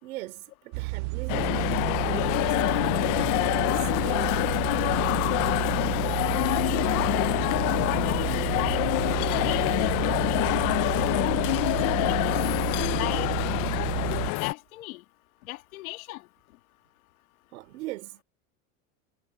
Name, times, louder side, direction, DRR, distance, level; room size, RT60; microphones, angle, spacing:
voice 1, 0.0-4.6 17.5-18.2, right 17 dB, 85° right, 4.4 m, -40 dB
sound 1, 0.7-14.3, right 26 dB, 55° right, 0.5 m, -31 dB
sound 2, 1.3-14.5, left 22 dB, 50° left, 0.7 m, -26 dB
voice 2, 6.3-8.8 9.4-12.4 12.9-13.3 13.7-14.0 14.2-15.0 15.4-16.2, left 19 dB, 85° left, 2.4 m, -36 dB
supercardioid pair, 135°, 41 cm